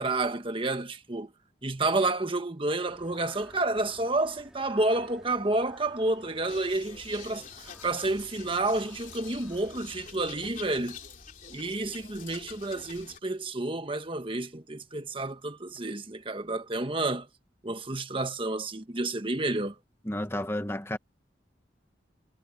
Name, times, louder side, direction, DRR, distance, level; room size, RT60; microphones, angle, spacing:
voice 1, 0.0-1.3 1.6-11.0 11.5-17.3 17.6-19.7, right 2 dB, 30° right, 1.5 m, -30 dB
sound 1, 2.8-10.1, equal, 5° right, 4.7 m, -54 dB
sound 2, 6.5-13.2, left 6 dB, 45° left, 3.1 m, -47 dB
voice 2, 20.0-21.0, left 1 dB, 15° left, 1.5 m, -31 dB
head